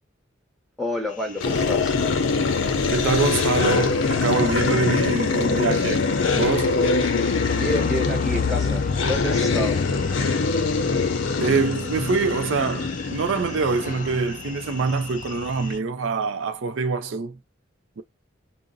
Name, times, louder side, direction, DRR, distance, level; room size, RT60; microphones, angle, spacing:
voice 1, 0.8-1.9 7.5-9.8, left 1 dB, ahead, 0.8 m, -29 dB
sound 1, 1.2-15.8, left 4 dB, 40° left, 0.4 m, -32 dB
sound 2, 1.4-14.3, left 4 dB, 90° left, 0.6 m, -24 dB
voice 2, 2.9-6.8 11.4-17.4 18.0-18.1, right 4 dB, 80° right, 0.4 m, -25 dB
2.5 x 2.0 x 3.8 m
head